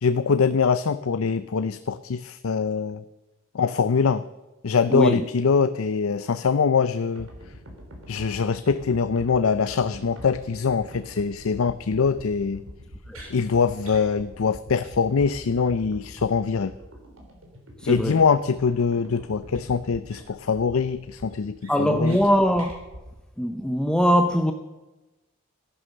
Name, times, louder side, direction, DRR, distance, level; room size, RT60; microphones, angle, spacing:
voice 1, 0.0-3.0 3.5-4.2 4.6-7.3 8.1-12.6 13.3-16.7 17.8-22.2, left 5 dB, 85° left, 0.5 m, -23 dB
voice 2, 4.9-5.3 13.1-13.2 17.8-18.2 21.7-22.8 23.4-24.5, equal, 5° left, 0.6 m, -21 dB
sound 1, 7.2-23.2, equal, 70° right, 3.6 m, -44 dB
sound 2, 13.1-13.3 13.8-14.1 14.4-14.5 14.8-14.9 15.2-15.3 19.5-19.6 20.1-20.5 20.8-20.9 21.3-22.2 22.5-22.8, right 2 dB, 90° right, 5.9 m, -47 dB
14.5 x 11.0 x 6.6 m
head